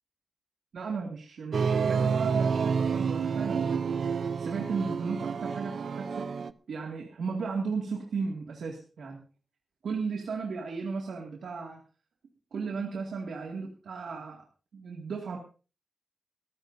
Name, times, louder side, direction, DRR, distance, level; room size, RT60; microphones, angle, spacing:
voice 1, 0.7-4.0 4.4-9.2 9.8-11.8 12.5-14.4 14.7-15.4, right 5 dB, 85° right, 0 dB, 2.1 m, -35 dB
sound 1, 1.5-6.5, right 6 dB, 65° right, 0.6 m, -29 dB
22.5 x 14.5 x 2.7 m, 0.36 s
wide cardioid pair, 120°, 0 cm